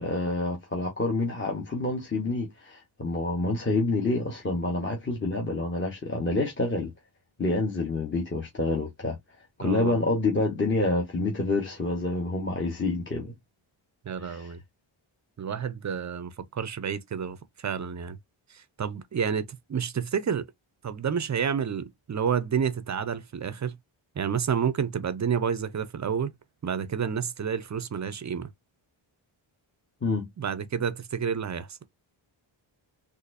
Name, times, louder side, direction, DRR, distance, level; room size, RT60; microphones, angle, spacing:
voice 1, 0.0-6.9 7.4-9.2 9.6-13.3 14.2-14.5 30.0-30.3, left 2 dB, 25° left, 0.9 m, -28 dB
voice 2, 9.6-10.0 14.1-14.6 15.4-18.2 18.5-20.4 20.8-23.8 24.2-26.3 26.6-28.5 30.4-31.7, right 7 dB, 35° right, 0.5 m, -29 dB
4.1 x 2.6 x 2.5 m
wide cardioid pair, 125°, 50 cm